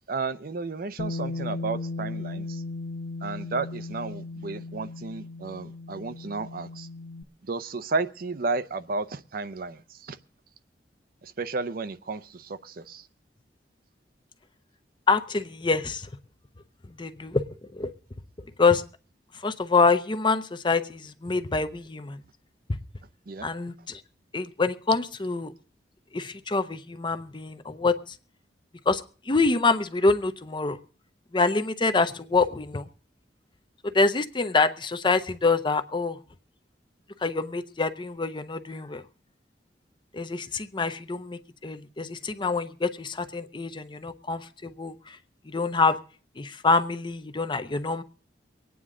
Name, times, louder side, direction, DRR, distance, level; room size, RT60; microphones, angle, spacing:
voice 1, 0.1-2.6 3.2-6.9 7.4-10.2 11.2-13.1 23.3-23.5, right 3 dB, 55° right, 0.6 m, -33 dB
Bass guitar, 1.0-7.2, left 2 dB, 80° left, 0.9 m, -36 dB
voice 2, 15.1-16.1 17.0-17.4 17.7-17.9 18.6-18.8 19.4-22.2 23.4-24.0 24.3-25.5 26.1-28.1 28.9-30.8 31.3-32.9 33.8-36.2 37.2-39.0 40.1-45.2 45.5-46.0 46.4-48.0, left 4 dB, 25° left, 0.7 m, -26 dB
24.0 x 9.4 x 3.7 m
head